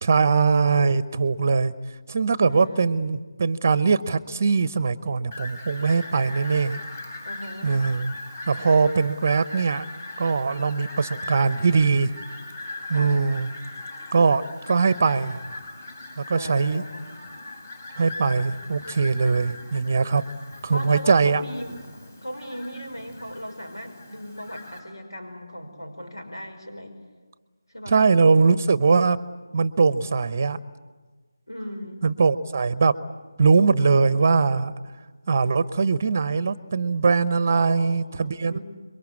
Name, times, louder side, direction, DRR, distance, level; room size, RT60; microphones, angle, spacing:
voice 1, 0.0-1.7 2.1-6.8 7.6-8.1 8.5-9.8 10.2-12.1 12.9-13.5 14.1-15.4 16.2-16.8 18.0-20.2 20.6-21.4 27.9-29.2 29.5-30.6 32.0-32.9 33.4-34.7 35.3-38.6, right 4 dB, 30° right, 16 dB, 0.9 m, -21 dB
voice 2, 2.5-2.9 7.3-7.8 12.9-13.2 16.3-17.0 20.7-21.8 22.2-26.9 27.7-28.1 31.5-32.0 37.5-38.6, equal, 85° left, 4 dB, 5.4 m, -37 dB
Fowl, 5.3-24.8, left 2 dB, 30° left, 6.0 m, -40 dB
27.0 x 23.0 x 8.5 m, 1.4 s
figure-of-eight pair, 160°, 2 cm